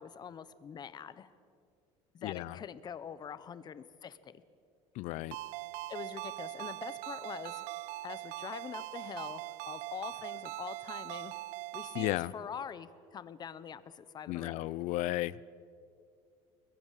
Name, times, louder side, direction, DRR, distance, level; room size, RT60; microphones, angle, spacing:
voice 1, 0.0-1.3 2.1-4.4 5.9-7.7 8.0-11.4 11.7-14.7, left 7 dB, 35° left, 15 dB, 1.2 m, -44 dB
voice 2, 2.2-2.5 5.0-5.4 12.0-12.3 14.3-15.3, left 17 dB, 70° left, 20 dB, 0.7 m, -34 dB
Ringtone, 5.3-12.2, right 17 dB, 80° right, 0.9 m, -41 dB
29.0 x 22.0 x 7.6 m, 2.4 s
cardioid pair, 135°, 13 cm